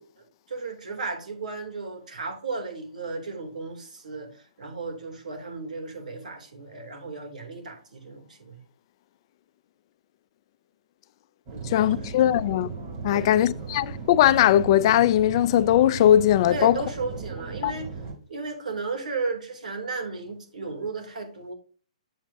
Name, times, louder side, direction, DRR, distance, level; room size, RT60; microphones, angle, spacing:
voice 1, 0.0-8.6 11.5-12.1 13.1-13.3 16.5-18.0 18.3-21.5, right 3 dB, 85° right, 2.7 m, -35 dB
sound 1, 11.5-18.1, right 4 dB, 30° right, 3.0 m, -37 dB
voice 2, 11.7-12.7 13.0-16.8 17.6-17.7, left 12 dB, 40° left, 0.4 m, -20 dB
7.9 x 7.2 x 2.6 m
hypercardioid pair, 145°, 4 cm